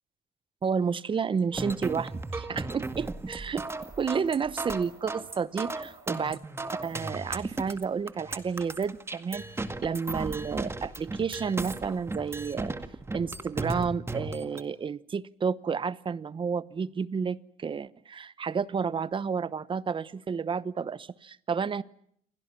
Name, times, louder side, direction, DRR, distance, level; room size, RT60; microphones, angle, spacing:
voice 1, 0.6-3.7 4.0-6.4 6.8-9.5 9.8-12.7 13.1-21.8, right 6 dB, 30° right, 17 dB, 1.0 m, -31 dB
sound 1, 1.5-14.6, right 2 dB, 15° right, 1.9 m, -35 dB
29.0 x 24.0 x 6.1 m, 0.66 s
cardioid pair, 125°, 16 cm